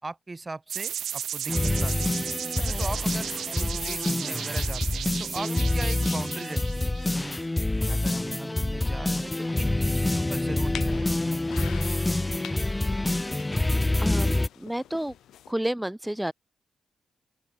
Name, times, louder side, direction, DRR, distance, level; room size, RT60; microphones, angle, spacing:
voice 1, 0.0-2.1 2.6-7.4 7.9-11.5, right 3 dB, 30° right, 3.8 m, -39 dB
sound 1, 0.7-7.4, right 9 dB, 75° right, 0.4 m, -35 dB
sound 2, 1.5-14.5, left 2 dB, 20° left, 0.8 m, -27 dB
sound 3, 10.3-15.5, left 11 dB, 85° left, 5.9 m, -45 dB
voice 2, 14.0-15.1 15.5-16.3, right 1 dB, 10° right, 0.6 m, -30 dB
open air
supercardioid pair, 45°, 0 cm